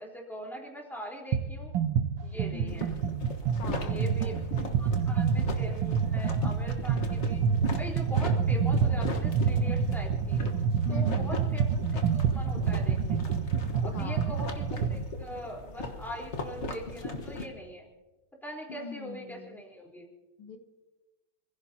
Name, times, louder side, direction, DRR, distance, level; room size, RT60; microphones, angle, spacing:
voice 1, 0.0-1.7 2.2-3.0 3.8-4.4 4.8-7.4 7.8-10.4 10.9-13.4 13.8-17.9 18.4-20.1, equal, ahead, -2 dB, 3.8 m, -42 dB
sound 1, 1.3-1.5 1.7-15.0, right 6 dB, 70° right, 1.5 m, -28 dB
voice 2, 2.5-3.0 3.6-5.0 10.8-11.5 13.9-14.4 18.7-19.6 20.4-20.6, left 4 dB, 80° left, 6 dB, 2.0 m, -43 dB
sound 2, 2.7-17.5, left 2 dB, 40° left, 1.4 m, -39 dB
28.0 x 16.0 x 2.8 m, 1.1 s
omnidirectional pair, 2.3 m